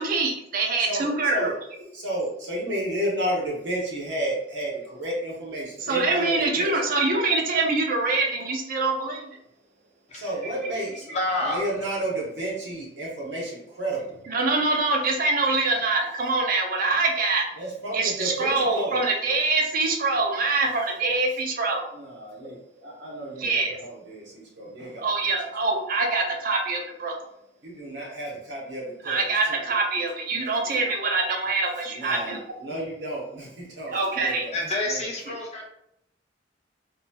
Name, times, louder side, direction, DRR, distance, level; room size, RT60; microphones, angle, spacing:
voice 1, 0.0-1.5 5.9-9.4 14.3-17.4 17.9-21.8 23.4-23.8 25.0-27.2 29.1-32.4 33.9-34.5 35.3-35.4, right 3 dB, 50° right, 2 dB, 0.5 m, -24 dB
voice 2, 0.8-1.5 1.9-6.7 10.1-11.1 11.4-14.2 17.6-19.1 20.6-20.8 21.9-25.3 25.6-25.7 27.6-29.6 30.3-30.8 31.9-35.1, right 1 dB, 75° right, -3 dB, 1.0 m, -32 dB
voice 3, 11.1-11.6 34.5-35.7, left 2 dB, 40° left, -3 dB, 0.7 m, -28 dB
2.7 x 2.7 x 2.2 m, 0.76 s
head